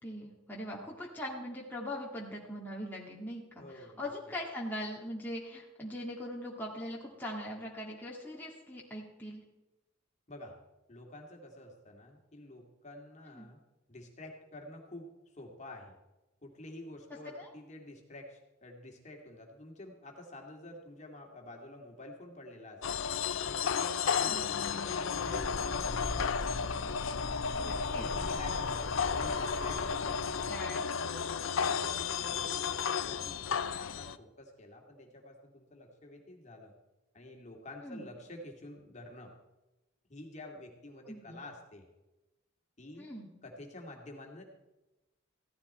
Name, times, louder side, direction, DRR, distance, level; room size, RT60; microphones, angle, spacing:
voice 1, 0.0-9.4 13.3-13.5 17.4-17.5 24.2-24.4 27.5-28.1 30.5-30.8 37.8-38.0 41.1-41.4 43.0-43.3, left 1 dB, 10° left, -4 dB, 2.0 m, -41 dB
voice 2, 3.6-4.1 10.3-10.6 10.9-13.6 13.9-16.0 16.4-23.0 23.4-26.6 27.9-28.9 29.2-31.5 31.8-36.7 37.1-39.3 40.1-41.9 42.8-43.1 43.4-44.4, left 1 dB, 35° left, 1 dB, 2.4 m, -49 dB
sound 1, 22.8-34.2, left 6 dB, 80° left, 0.6 m, -33 dB
sound 2, 25.1-30.5, left 2 dB, 65° left, 1.2 m, -40 dB
16.0 x 14.0 x 4.3 m, 1.0 s
head